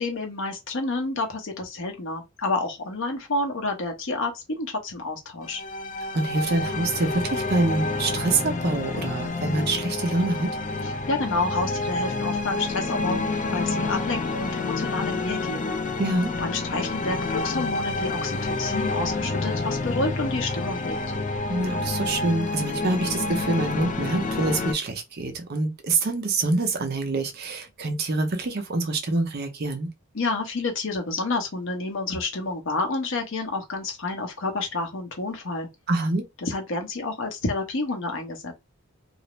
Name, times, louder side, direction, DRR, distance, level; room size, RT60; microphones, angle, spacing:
voice 1, 0.0-5.6 10.8-15.8 16.4-21.0 30.1-35.7 36.4-38.5, left 3 dB, 65° left, 0.8 m, -29 dB
sound 1, 5.4-24.7, left 3 dB, 40° left, 0.4 m, -28 dB
voice 2, 6.1-10.5 16.0-16.3 21.5-29.9 35.9-36.2, right 2 dB, 50° right, 0.6 m, -26 dB
2.4 x 2.0 x 3.0 m
head